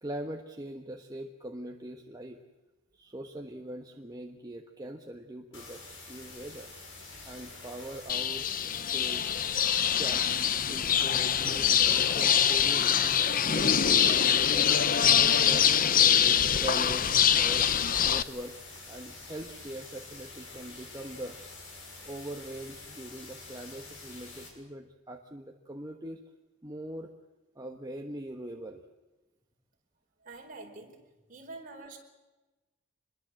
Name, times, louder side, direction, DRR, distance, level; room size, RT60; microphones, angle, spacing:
voice 1, 0.0-2.4 2.9-6.7 7.3-8.4 8.9-9.4 10.0-10.3 10.7-14.8 15.2-15.9 16.2-17.1 17.4-17.7 18.0-18.5 18.9-21.4 22.0-26.2 26.6-27.1 27.6-28.8, right 1 dB, 20° right, 2 dB, 1.3 m, -42 dB
sound 1, 5.5-24.5, left 3 dB, 70° left, 6.8 m, -47 dB
sound 2, 8.1-18.2, left 8 dB, 45° left, 0.7 m, -24 dB
voice 2, 30.2-31.0 31.3-32.0, right 3 dB, 45° right, 1 dB, 4.8 m, -46 dB
26.0 x 21.5 x 7.7 m, 1.1 s
head